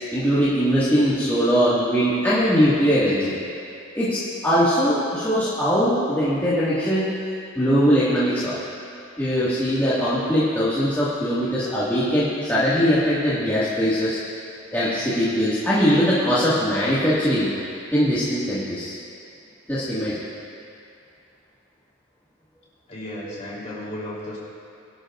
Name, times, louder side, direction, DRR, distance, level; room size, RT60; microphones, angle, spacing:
voice 1, 0.1-3.3 3.9-7.1 7.6-8.6 9.2-14.2 14.7-17.5 17.9-18.9 19.7-20.2, equal, 10° left, -13 dB, 2.0 m, -21 dB
voice 2, 22.9-24.4, left 1 dB, 35° left, -7 dB, 3.6 m, -34 dB
22.5 x 11.5 x 2.6 m, 2.6 s
head